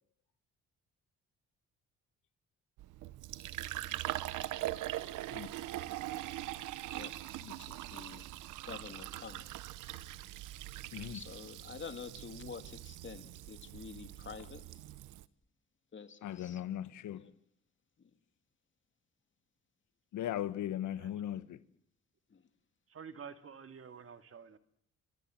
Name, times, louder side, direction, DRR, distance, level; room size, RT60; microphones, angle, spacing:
Fill (with liquid), 2.8-15.3, right 15 dB, 90° right, 1.0 m, -42 dB
voice 1, 6.9-8.3 8.7-9.4 11.1-14.6 15.9-16.6 17.1-17.3 18.0-18.1 22.3-22.4, left 5 dB, 40° left, 2.9 m, -48 dB
voice 2, 10.9-11.2 16.2-17.2 20.1-21.6, left 11 dB, 75° left, 1.3 m, -38 dB
voice 3, 22.9-24.6, right 6 dB, 50° right, 2.2 m, -49 dB
28.0 x 26.5 x 7.6 m
cardioid pair, 90°, 30 cm